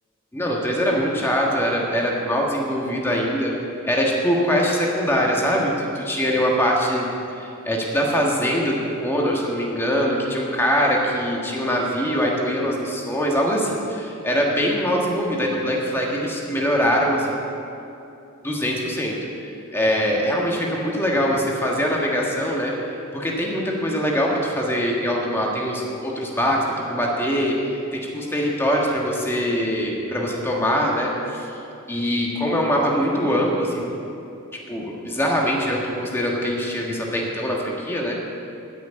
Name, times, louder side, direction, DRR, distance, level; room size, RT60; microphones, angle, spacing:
voice 1, 0.3-3.5 3.8-7.1 7.4-17.5 18.4-31.6 31.9-33.9 34.7-38.2, equal, 10° left, -2 dB, 1.6 m, -23 dB
13.5 x 6.3 x 9.4 m, 2.7 s
head